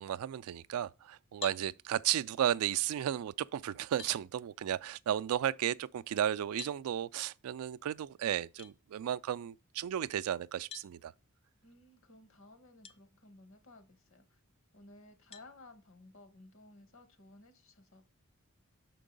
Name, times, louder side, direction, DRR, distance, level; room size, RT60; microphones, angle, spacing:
voice 1, 0.0-11.1, right 10 dB, 80° right, 0.3 m, -34 dB
sound 1, 1.4-1.7 3.3-3.4 4.0-4.2 6.6-6.8 8.6-8.7 10.7-10.9 12.8-13.0 13.6-13.7 15.3-15.5, left 9 dB, 25° left, 0.4 m, -46 dB
voice 2, 11.6-14.4 14.7-18.1, left 2 dB, 60° left, 1.1 m, -57 dB
6.0 x 4.6 x 5.1 m
head